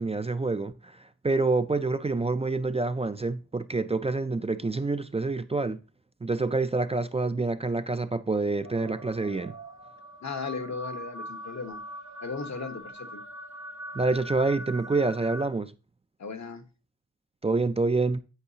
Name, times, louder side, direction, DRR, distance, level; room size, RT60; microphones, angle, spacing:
voice 1, 0.0-5.8 6.2-9.5 14.0-15.7 17.4-18.2, right 3 dB, 20° right, 0.3 m, -27 dB
sound 1, 8.6-15.5, right 1 dB, 70° right, 1.0 m, -41 dB
voice 2, 10.2-11.8 12.2-13.2 16.2-16.6, left 4 dB, 70° left, 1.1 m, -36 dB
8.0 x 8.0 x 2.8 m
wide cardioid pair, 95°, 29 cm